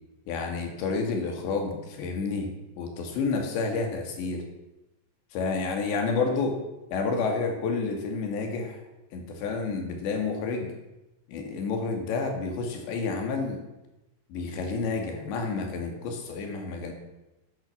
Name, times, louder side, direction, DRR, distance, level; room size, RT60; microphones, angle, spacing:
voice 1, 0.3-2.5 2.8-4.4 5.3-6.6 6.9-8.8 9.1-10.7 11.3-13.6 14.3-16.9, left 4 dB, 75° left, 3 dB, 4.4 m, -29 dB
12.0 x 10.5 x 7.2 m, 0.98 s
omnidirectional pair, 5.1 m